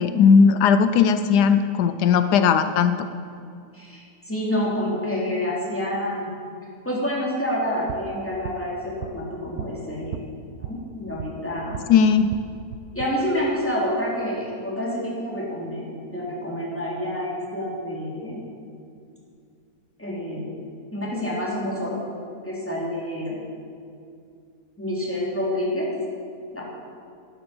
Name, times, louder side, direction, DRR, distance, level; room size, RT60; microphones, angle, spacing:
voice 1, 0.0-3.1 11.9-12.3, left 6 dB, 80° left, 11 dB, 1.2 m, -17 dB
voice 2, 3.7-6.3 6.8-10.2 10.6-11.8 12.9-18.4 20.0-20.4 20.9-22.0 22.4-23.4 24.8-25.9 26.5-26.7, equal, 5° left, -5 dB, 3.2 m, -28 dB
sound 1, 7.7-11.9 12.2-13.1, right 8 dB, 70° right, 1.1 m, -38 dB
11.5 x 11.0 x 7.0 m, 2.4 s
omnidirectional pair, 1.7 m